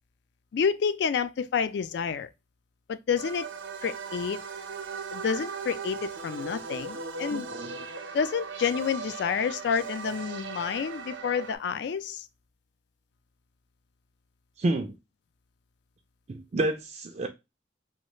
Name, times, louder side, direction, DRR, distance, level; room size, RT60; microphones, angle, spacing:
voice 1, 0.5-2.3 2.9-3.5 3.8-4.4 5.1-7.5 8.1-12.3, left 6 dB, 60° left, 0.3 m, -29 dB
sound 1, 3.2-11.6, right 5 dB, 80° right, 0.6 m, -38 dB
voice 2, 7.3-7.9 14.6-14.9 16.3-17.3, right 2 dB, 35° right, 0.3 m, -30 dB
3.1 x 2.3 x 3.0 m
head